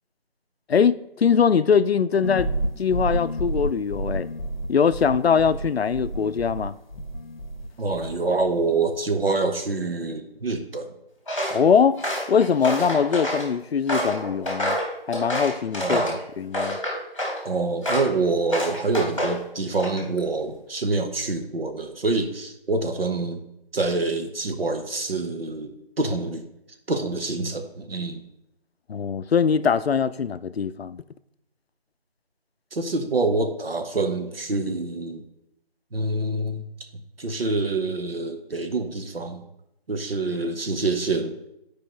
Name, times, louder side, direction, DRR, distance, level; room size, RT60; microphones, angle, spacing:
voice 1, 0.7-2.5 2.8-4.3 4.7-6.8 11.5-12.0 12.3-14.8 15.1-16.0 16.4-16.8 28.9-31.0, left 6 dB, 85° left, 0.5 m, -22 dB
sound 1, 2.2-7.7 7.9-8.6, right 1 dB, 50° left, 0.8 m, -30 dB
voice 2, 7.8-10.9 15.8-16.2 17.4-23.4 23.7-26.5 26.9-28.2 32.7-35.2 35.9-36.7 37.2-39.4 39.9-41.4, right 3 dB, 70° right, 0.9 m, -26 dB
Walk footsteps, 11.3-11.6 12.0-13.5 13.9-16.2 16.5-17.4 17.8-18.1 18.5-19.4 19.8-20.2, equal, 30° left, 1.2 m, -27 dB
9.2 x 4.7 x 3.0 m
figure-of-eight pair, 175°, 30 cm